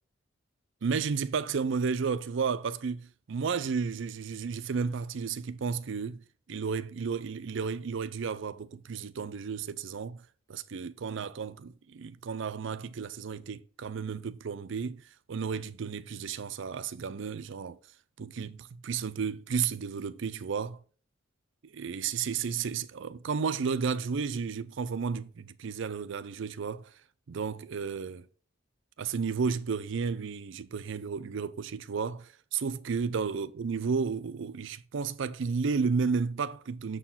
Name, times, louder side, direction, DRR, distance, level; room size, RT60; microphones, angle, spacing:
voice 1, 0.8-6.2 6.5-10.2 10.5-15.0 15.3-17.8 18.2-20.8 21.6-26.9 27.3-28.2 29.0-37.0, right 5 dB, 70° right, 0.5 m, -32 dB
6.8 x 4.5 x 5.7 m
head